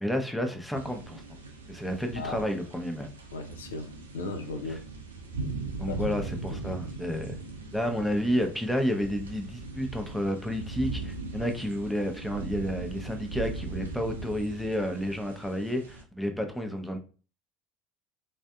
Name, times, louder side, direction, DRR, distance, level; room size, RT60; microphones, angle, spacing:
voice 1, 0.0-1.2 1.7-3.1 5.8-7.3 7.7-17.0, equal, 5° left, 0.6 m, -30 dB
sound 1, 0.7-16.0, right 3 dB, 90° right, 0.5 m, -39 dB
voice 2, 2.2-2.5 3.3-4.8 5.9-6.0 6.5-6.6, left 3 dB, 80° left, 0.4 m, -36 dB
3.4 x 2.5 x 2.3 m
hypercardioid pair, 75°, 0 cm